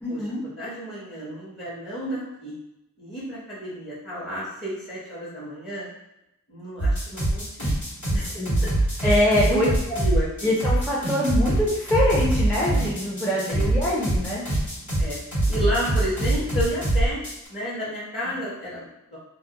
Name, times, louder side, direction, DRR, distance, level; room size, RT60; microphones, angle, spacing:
voice 1, 0.0-0.4 8.1-8.6 9.0-9.7 10.4-14.4, left 1 dB, 5° left, -7 dB, 0.5 m, -24 dB
voice 2, 0.6-2.5 3.0-5.9 6.5-7.7 8.1-8.3 8.6-8.7 9.4-9.6 9.9-10.5 13.4-13.7 15.0-15.2 15.5-17.2 17.5-19.2, equal, 35° left, -10 dB, 0.9 m, -31 dB
sound 1, 6.8-17.5, right 1 dB, 65° left, 1.1 m, -23 dB
2.2 x 2.1 x 2.8 m, 0.87 s
wide cardioid pair, 100°, 31 cm